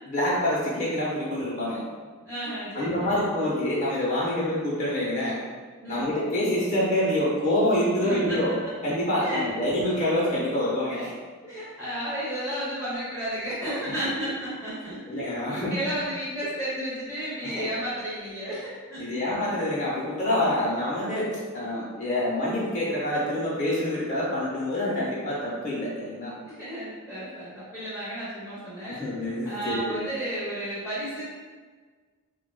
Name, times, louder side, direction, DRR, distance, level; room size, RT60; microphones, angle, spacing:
voice 1, 0.1-1.8 2.7-5.4 5.9-8.5 8.8-11.1 14.2-14.3 15.1-15.7 17.4-17.6 19.0-26.3 28.9-30.0, left 1 dB, 35° left, -7 dB, 0.6 m, -26 dB
voice 2, 2.2-3.2 5.8-6.1 8.0-8.4 8.8-8.9 9.2-9.4 11.4-19.2 26.5-29.0 29.4-31.2, right 1 dB, 10° right, -13 dB, 0.8 m, -33 dB
4.5 x 2.2 x 2.2 m, 1.5 s
head